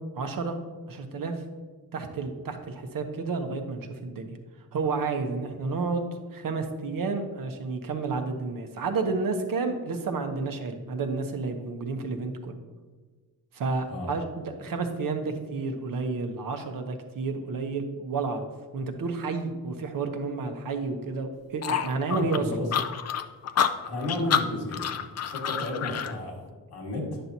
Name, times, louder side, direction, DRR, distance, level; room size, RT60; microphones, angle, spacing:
voice 1, 0.2-0.6 0.9-1.4 1.9-4.4 4.7-12.6 13.5-18.5 18.7-22.5, right 4 dB, 60° right, 5 dB, 1.0 m, -31 dB
sound 1, 21.6-26.1, left 8 dB, 45° left, 0.5 m, -28 dB
voice 2, 22.2-22.7 23.8-25.0 25.3-27.2, left 1 dB, 85° left, -2 dB, 1.9 m, -32 dB
10.0 x 5.9 x 2.7 m, 1.4 s
cardioid pair, 100°, 38 cm